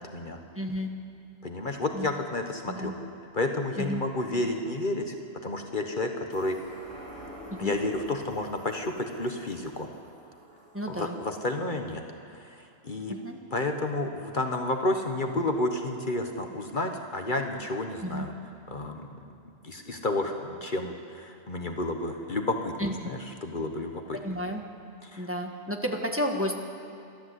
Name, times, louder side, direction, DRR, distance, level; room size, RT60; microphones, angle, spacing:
voice 1, 0.5-0.9 1.9-2.1 2.7-2.9 3.8-4.0 7.5-7.7 10.7-11.2 13.1-13.4 18.0-18.3 22.8-23.1 24.2-24.6 25.2-26.6, equal, 10° right, 2 dB, 1.6 m, -31 dB
voice 2, 1.4-2.9 3.3-5.1 5.4-6.6 7.6-9.9 10.9-13.2 13.5-18.3 18.7-19.1 19.6-22.8 23.1-24.2 25.0-25.3, left 2 dB, 45° left, 4 dB, 1.3 m, -31 dB
sound 1, 6.3-13.1 13.5-13.6, equal, 85° right, 4.7 m, -49 dB
28.0 x 12.5 x 8.1 m, 2.5 s
omnidirectional pair, 1.2 m